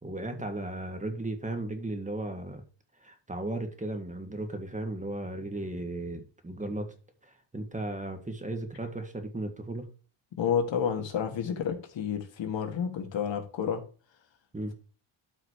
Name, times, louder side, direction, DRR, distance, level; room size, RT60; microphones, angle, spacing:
voice 1, 0.0-2.6 3.0-6.9 7.2-9.9 14.5-14.7, right 2 dB, 15° right, 6 dB, 1.7 m, -35 dB
voice 2, 10.4-13.8, left 7 dB, 75° left, 5 dB, 2.3 m, -30 dB
12.5 x 5.8 x 3.2 m, 0.36 s
cardioid pair, 125°, 45 cm